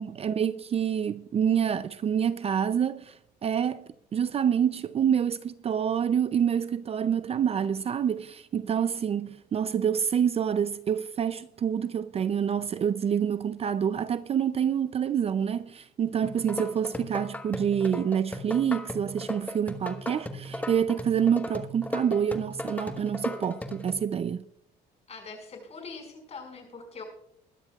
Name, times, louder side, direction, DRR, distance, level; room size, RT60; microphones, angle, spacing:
voice 1, 0.0-3.2 3.4-24.4, right 8 dB, 35° right, 0.5 m, -27 dB
sound 1, 16.2-23.9, left 1 dB, 10° left, 1.3 m, -36 dB
voice 2, 25.1-27.0, left 4 dB, 40° left, 5.4 m, -43 dB
21.5 x 12.5 x 2.4 m
cardioid pair, 110°, 17 cm